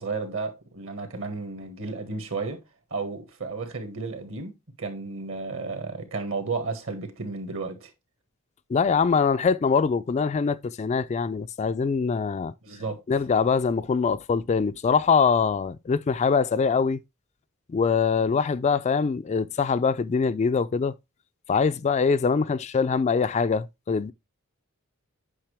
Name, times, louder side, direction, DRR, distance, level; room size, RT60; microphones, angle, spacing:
voice 1, 0.0-2.6 2.9-7.9 12.6-13.0, right 4 dB, 65° right, 1.8 m, -33 dB
voice 2, 8.7-12.5 13.1-17.0 17.7-20.9 21.5-24.1, left 5 dB, 30° left, 0.3 m, -23 dB
8.8 x 5.6 x 3.3 m
head